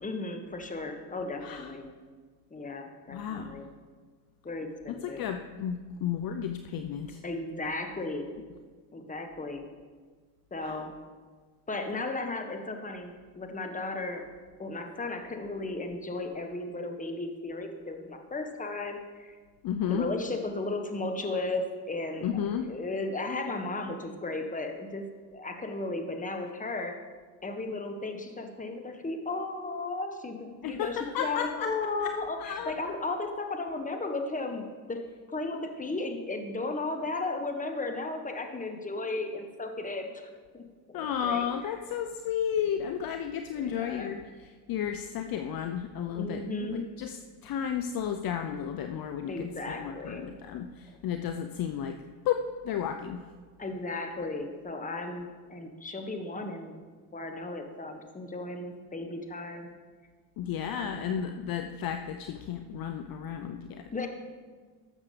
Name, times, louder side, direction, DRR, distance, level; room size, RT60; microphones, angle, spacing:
voice 1, 0.0-1.9 2.5-3.7 4.4-5.2 7.2-8.3 8.9-9.7 10.5-10.9 11.7-14.2 14.6-19.4 19.8-22.3 22.6-25.1 25.3-27.0 27.4-35.0 35.3-40.3 40.5-41.7 43.5-44.1 46.2-46.8 49.3-50.3 53.6-56.8 57.1-59.7 60.7-61.3 63.9-64.1, left 2 dB, 15° left, 5 dB, 1.5 m, -35 dB
voice 2, 3.1-3.6 4.9-7.2 10.6-10.8 19.6-20.1 22.2-22.7 30.6-31.7 32.4-32.7 40.9-44.2 44.7-46.4 46.7-47.2 47.4-52.0 52.2-53.2 60.4-63.8, left 8 dB, 45° left, 7 dB, 0.7 m, -33 dB
12.5 x 7.3 x 5.1 m, 1.5 s
supercardioid pair, 85°, 49 cm